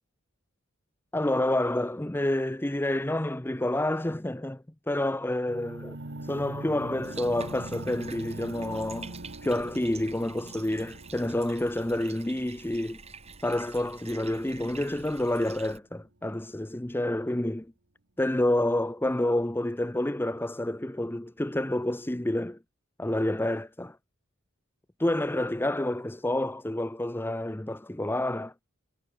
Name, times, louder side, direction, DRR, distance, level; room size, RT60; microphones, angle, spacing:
voice 1, 1.1-6.0 6.2-9.2 9.4-13.0 13.4-17.7 18.2-22.6 23.0-24.0 25.0-28.5, left 1 dB, 10° left, 0.7 m, -29 dB
sound 1, 5.5-15.4, right 1 dB, 55° right, 1.9 m, -43 dB
Bathtub (filling or washing), 7.0-15.8, right 5 dB, 30° right, 6.1 m, -48 dB
head